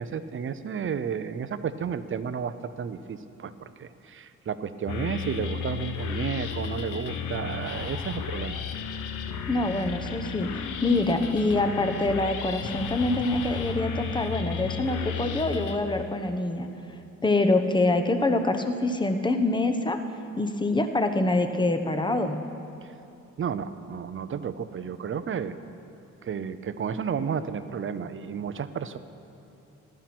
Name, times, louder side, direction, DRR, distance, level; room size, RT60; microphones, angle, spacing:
voice 1, 0.0-8.6 22.8-22.9 23.4-25.5 26.2-29.0, right 7 dB, 40° right, 12 dB, 0.7 m, -32 dB
sound 1, 4.9-15.8, left 6 dB, 90° left, 0.9 m, -33 dB
voice 2, 9.5-16.7 17.2-20.0 20.4-22.4, left 2 dB, 15° left, 6 dB, 1.1 m, -25 dB
15.0 x 12.0 x 6.1 m, 2.8 s
cardioid pair, 90°, 30 cm